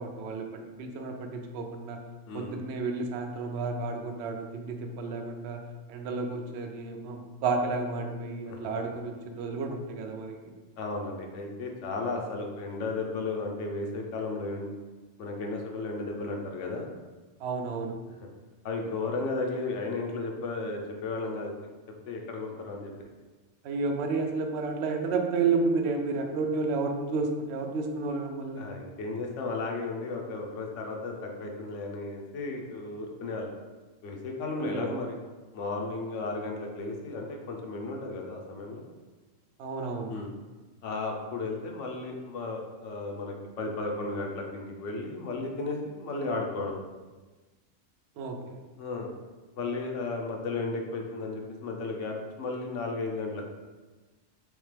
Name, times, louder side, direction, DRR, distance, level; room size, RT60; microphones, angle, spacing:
voice 1, 0.0-2.0 2.3-5.6 5.9-10.5 17.4-17.9 23.6-28.7 34.6-35.0 39.6-40.1 48.2-48.6, right 4 dB, 65° right, 4 dB, 0.7 m, -31 dB
voice 2, 10.8-14.7 15.2-16.9 18.6-21.5 22.1-22.9 28.6-33.5 34.0-35.1 35.5-38.8 40.1-40.3 40.8-46.8 48.8-49.1 49.6-53.4, left 3 dB, 70° left, 1 dB, 0.9 m, -34 dB
3.6 x 3.2 x 3.2 m, 1.2 s
omnidirectional pair, 1.3 m